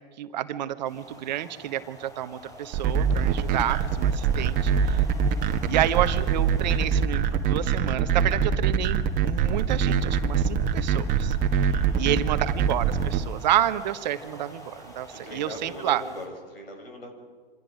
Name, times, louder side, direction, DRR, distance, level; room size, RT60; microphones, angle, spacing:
voice 1, 0.2-5.1 5.7-11.4 12.0-16.0, right 12 dB, 45° right, 11 dB, 1.2 m, -29 dB
sound 1, 0.8-16.3, equal, 10° left, 5.4 m, -48 dB
sound 2, 2.7-13.2, right 7 dB, 25° right, 1.5 m, -23 dB
voice 2, 11.7-12.5 15.1-17.1, left 1 dB, 70° left, 3 dB, 6.2 m, -40 dB
27.0 x 26.0 x 5.1 m, 1.5 s
figure-of-eight pair, 100°, 30 cm